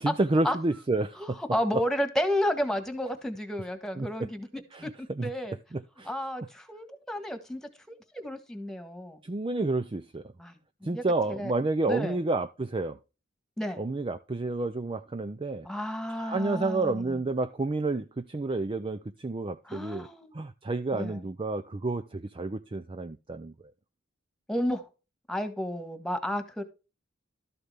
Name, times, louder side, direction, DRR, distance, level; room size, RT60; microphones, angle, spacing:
voice 1, 0.0-1.4 4.0-4.3 4.7-5.3 5.7-6.1 9.2-10.2 10.8-13.0 13.8-15.7 16.1-20.1 20.3-23.5, right 2 dB, 25° right, 0.5 m, -30 dB
voice 2, 1.2-4.5 4.8-5.6 6.1-7.6 8.1-9.2 10.4-11.0 11.3-11.5 11.9-12.2 13.6-13.8 15.6-17.2 19.6-20.3 20.9-21.3 24.5-24.8 25.3-26.6, equal, 5° left, 1.7 m, -32 dB
13.0 x 6.9 x 3.5 m
head